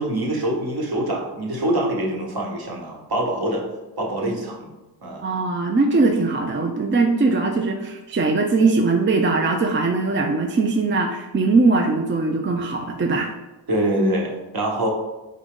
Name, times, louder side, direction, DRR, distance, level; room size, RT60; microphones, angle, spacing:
voice 1, 0.0-3.6 4.0-4.7 5.0-5.3 13.7-14.9, right 1 dB, 55° right, -1 dB, 1.1 m, -24 dB
voice 2, 5.2-13.3, right 3 dB, 30° right, 2 dB, 0.5 m, -20 dB
3.8 x 3.8 x 3.6 m, 1.1 s
wide cardioid pair, 65°, 43 cm